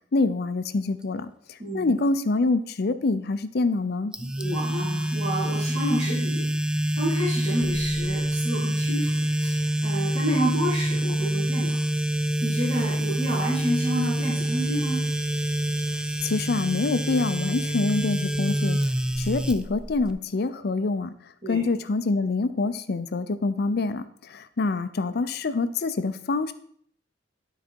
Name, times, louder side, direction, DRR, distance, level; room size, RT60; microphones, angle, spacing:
voice 1, 0.1-4.1 16.2-18.8 19.2-21.1 21.5-26.5, left 3 dB, 60° left, 12 dB, 0.5 m, -26 dB
voice 2, 1.6-1.9 4.4-6.5 6.9-11.8 12.4-15.0 21.4-21.6, equal, 40° right, -10 dB, 3.1 m, -29 dB
sound 1, 4.1-20.1, right 1 dB, 5° right, 0.4 m, -26 dB
12.0 x 4.1 x 4.4 m, 0.62 s
head